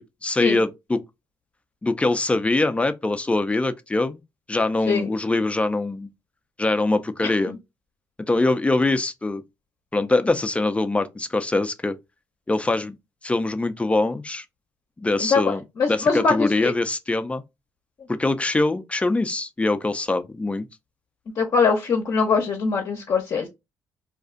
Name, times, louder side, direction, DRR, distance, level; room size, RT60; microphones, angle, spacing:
voice 1, 0.2-1.0 1.8-4.2 4.5-6.1 6.6-7.5 8.3-9.4 9.9-12.0 12.5-12.9 13.2-14.4 15.0-15.6 15.9-17.4 18.1-20.7, left 2 dB, 15° left, 0.5 m, -23 dB
voice 2, 7.2-7.6 15.2-16.7 21.4-23.5, left 5 dB, 55° left, 0.7 m, -22 dB
2.5 x 2.3 x 3.7 m
cardioid pair, 75°, 7 cm